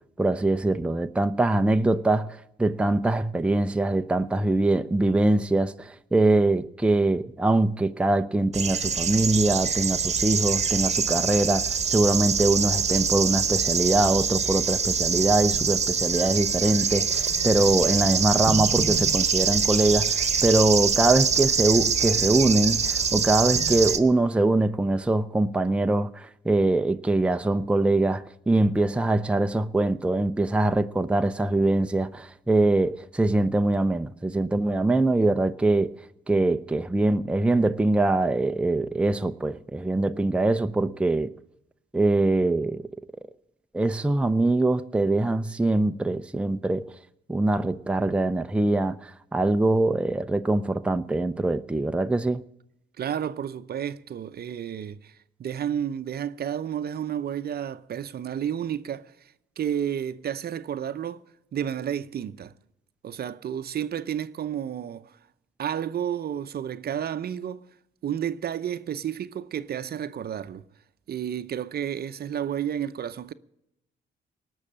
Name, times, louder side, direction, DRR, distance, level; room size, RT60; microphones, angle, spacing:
voice 1, 0.2-35.9 36.3-41.3 41.9-42.8 43.7-46.9 47.3-52.4, right 2 dB, 5° right, 0.6 m, -23 dB
sound 1, 8.5-24.0, right 6 dB, 35° right, 1.3 m, -24 dB
voice 2, 53.0-61.2 61.5-62.5 63.0-65.2 65.6-67.6 68.0-70.6 71.1-73.3, right 9 dB, 50° right, 0.7 m, -31 dB
19.0 x 6.4 x 8.7 m
cardioid pair, 90°, 20 cm